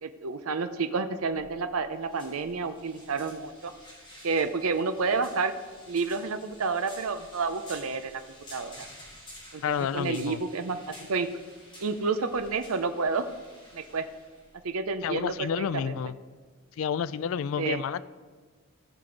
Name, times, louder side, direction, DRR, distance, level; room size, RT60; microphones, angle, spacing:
voice 1, 0.0-3.7 4.2-5.5 5.9-8.2 8.5-8.8 9.5-9.6 9.9-11.3 11.8-13.2 13.7-14.1 14.6-15.9 17.6-17.8, right 4 dB, 75° right, 9 dB, 0.6 m, -30 dB
sound 1, 1.3-15.9, equal, 20° left, 3.6 m, -51 dB
voice 2, 9.6-10.4 15.0-16.2 16.8-18.0, left 7 dB, 65° left, 16 dB, 0.3 m, -30 dB
15.5 x 6.1 x 5.1 m, 1.5 s
head